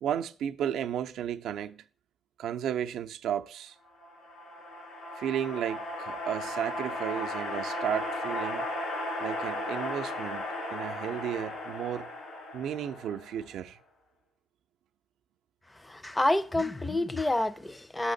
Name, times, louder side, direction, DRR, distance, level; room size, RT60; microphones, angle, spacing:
voice 1, 0.0-1.8 2.4-3.7 5.2-8.7 9.2-12.1 12.5-13.8, right 9 dB, 80° right, 0.4 m, -33 dB
sound 1, 4.0-13.5, left 1 dB, 75° left, 2.4 m, -36 dB
voice 2, 15.8-18.1, left 1 dB, 15° left, 0.4 m, -28 dB
6.3 x 5.8 x 3.9 m
cardioid pair, 90°, 0 cm